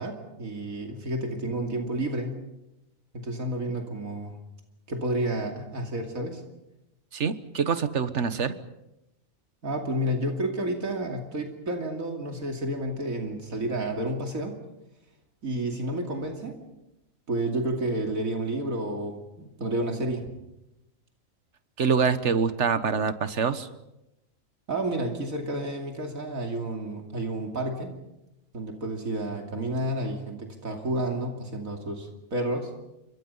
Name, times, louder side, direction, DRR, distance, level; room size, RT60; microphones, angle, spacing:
voice 1, 0.0-2.4 3.1-4.4 4.9-6.4 9.6-14.6 15.4-16.6 17.3-20.3 24.7-27.9 28.5-32.7, right 1 dB, 85° right, 2 dB, 3.1 m, -30 dB
voice 2, 7.1-8.5 21.8-23.7, right 6 dB, 60° right, 12 dB, 1.6 m, -25 dB
29.0 x 25.0 x 5.6 m, 0.91 s
omnidirectional pair, 1.4 m